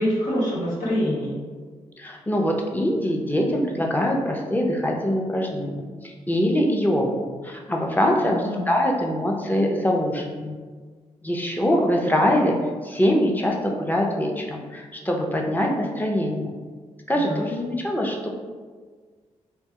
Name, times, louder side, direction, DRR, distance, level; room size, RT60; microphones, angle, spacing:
voice 1, 0.0-1.4 8.2-8.6 17.1-17.4, equal, 80° left, -6 dB, 1.0 m, -25 dB
voice 2, 2.0-5.9 6.3-8.4 8.7-10.6 11.2-12.6 12.8-16.6 17.1-18.3, equal, 15° left, 0 dB, 0.6 m, -23 dB
3.0 x 2.2 x 2.8 m, 1.5 s
supercardioid pair, 45°, 14 cm